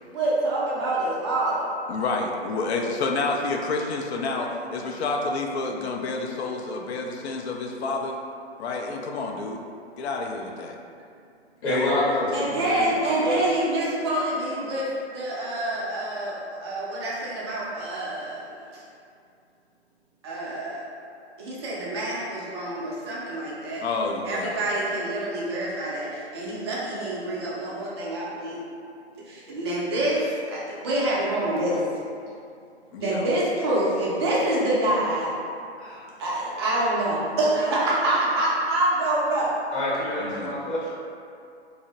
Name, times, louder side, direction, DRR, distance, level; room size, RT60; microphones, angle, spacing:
voice 1, 0.1-1.7 12.3-14.9 15.1-18.4 20.2-20.9 21.4-23.8 24.2-28.6 29.3-31.8 33.0-35.3 36.2-39.6, right 1 dB, 25° right, -7 dB, 0.3 m, -26 dB
voice 2, 1.9-8.2 8.6-9.6 10.0-10.7 11.7-13.0 23.8-24.6 32.9-33.3 40.2-40.6, left 3 dB, 70° left, 1 dB, 0.5 m, -29 dB
voice 3, 11.6-13.4 35.8-36.0 39.7-40.9, left 1 dB, 35° left, -8 dB, 0.9 m, -27 dB
2.6 x 2.0 x 2.8 m, 2.4 s
hypercardioid pair, 135°, 34 cm